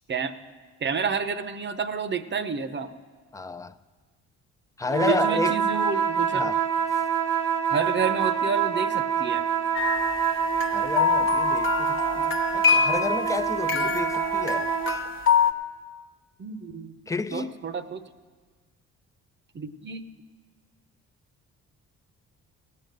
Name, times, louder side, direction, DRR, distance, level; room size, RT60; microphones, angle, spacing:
voice 1, 0.8-2.9 5.0-6.5 7.7-9.4 16.4-17.0 17.3-18.0 19.5-20.0, right 6 dB, 35° right, 0.8 m, -29 dB
voice 2, 3.3-3.7 4.8-5.6 6.3-6.6 10.7-14.7 17.1-17.5, left 4 dB, 10° left, 0.5 m, -31 dB
sound 1, 4.9-15.1, right 7 dB, 85° right, 1.1 m, -26 dB
sound 2, 9.7-15.5, left 6 dB, 45° left, 0.9 m, -25 dB
17.0 x 8.6 x 6.6 m
cardioid pair, 90°, 30 cm